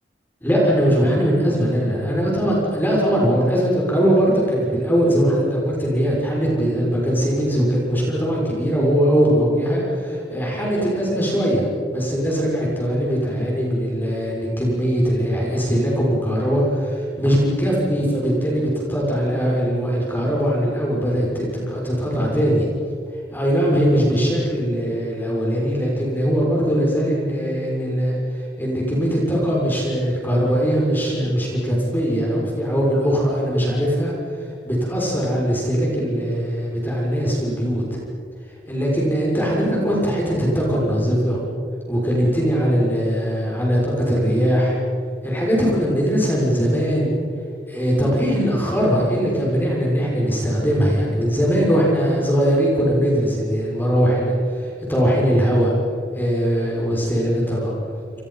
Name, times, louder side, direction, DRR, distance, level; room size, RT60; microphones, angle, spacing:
voice 1, 0.4-11.6 11.9-22.7 23.3-28.1 28.6-34.1 34.6-38.0 38.7-41.4 41.9-44.8 45.2-47.2 47.7-55.7 56.1-57.7, equal, 10° left, -4 dB, 6.4 m, -20 dB
29.5 x 28.5 x 5.8 m, 2.4 s
head